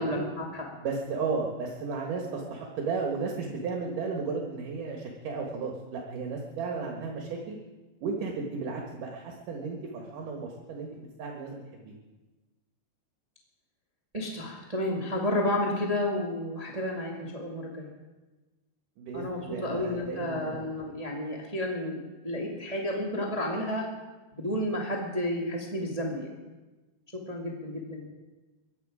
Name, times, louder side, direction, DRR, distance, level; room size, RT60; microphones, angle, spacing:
voice 1, 0.0-0.6 14.1-17.9 19.1-22.0 22.2-23.8 24.3-26.3 27.2-28.0, left 1 dB, 35° right, -1 dB, 0.5 m, -31 dB
voice 2, 0.8-7.6 8.0-11.9 19.0-20.6, right 4 dB, 60° right, 0 dB, 2.7 m, -34 dB
23.0 x 11.5 x 5.0 m, 1.2 s
omnidirectional pair, 5.1 m